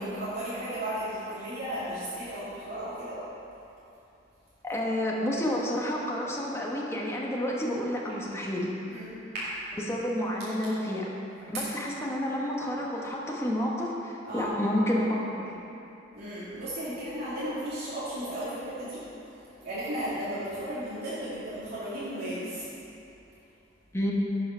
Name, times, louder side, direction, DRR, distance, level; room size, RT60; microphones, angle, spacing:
voice 1, 0.0-3.2 8.9-9.5 11.5-11.6 14.2-14.5 16.1-22.7, right 1 dB, 55° right, -12 dB, 2.4 m, -35 dB
voice 2, 4.6-8.7 9.8-11.0 11.5-15.5 23.9-24.1, equal, 15° left, -3 dB, 1.2 m, -30 dB
11.0 x 5.7 x 5.6 m, 2.9 s
head